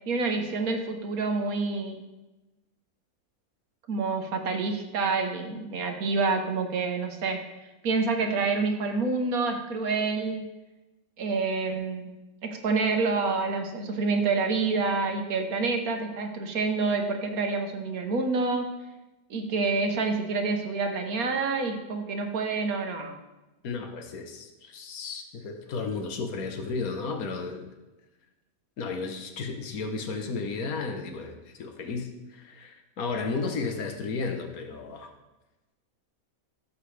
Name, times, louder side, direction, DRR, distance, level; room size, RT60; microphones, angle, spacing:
voice 1, 0.1-2.0 3.9-7.4 7.8-10.5 11.2-12.1 12.4-18.7 19.3-23.2, right 4 dB, 75° right, 4 dB, 1.6 m, -27 dB
voice 2, 23.6-27.7 28.8-35.1, left 4 dB, 80° left, 5 dB, 1.5 m, -33 dB
14.0 x 7.4 x 3.3 m, 1.1 s
omnidirectional pair, 1.5 m